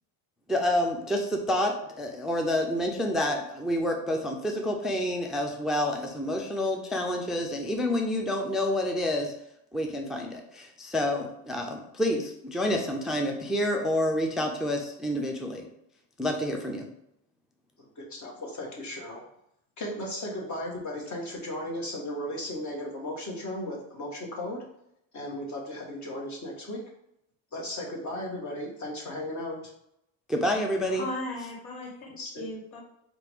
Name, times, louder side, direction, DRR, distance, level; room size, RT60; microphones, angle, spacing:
voice 1, 0.5-9.3 9.7-15.7 16.2-16.9 30.3-31.0, left 1 dB, ahead, 3 dB, 0.3 m, -28 dB
voice 2, 17.8-19.2 19.8-24.6 25.1-26.8 27.5-29.6 32.2-32.4, left 1 dB, 40° left, -1 dB, 1.4 m, -36 dB
voice 3, 30.9-32.8, left 1 dB, 85° left, -1 dB, 1.5 m, -37 dB
4.5 x 2.5 x 3.4 m, 0.78 s
cardioid pair, 105°, 44 cm